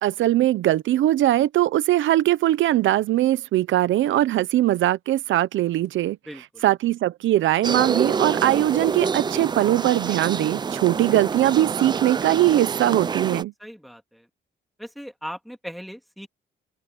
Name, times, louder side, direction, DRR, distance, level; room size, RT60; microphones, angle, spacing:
voice 1, 0.0-6.2 6.6-13.5, right 14 dB, 80° right, 0.7 m, -21 dB
voice 2, 6.3-6.6 13.6-14.3 14.8-16.3, equal, ahead, 2.4 m, -38 dB
sound 1, 7.6-13.4, right 5 dB, 20° right, 0.4 m, -27 dB
open air
cardioid pair, 130°, 20 cm